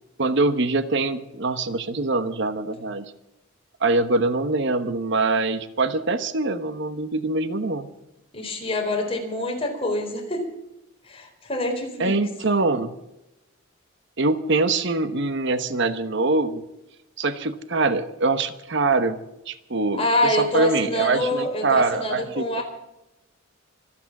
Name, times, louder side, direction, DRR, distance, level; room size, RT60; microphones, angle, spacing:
voice 1, 0.2-3.0 3.8-7.9 12.0-12.9 14.2-16.6 17.2-19.2 19.5-22.6, right 3 dB, 60° right, 11 dB, 1.1 m, -23 dB
voice 2, 8.3-10.4 11.1-12.2 20.0-22.6, left 1 dB, 30° left, 2 dB, 4.3 m, -26 dB
25.5 x 8.9 x 6.0 m, 0.90 s
head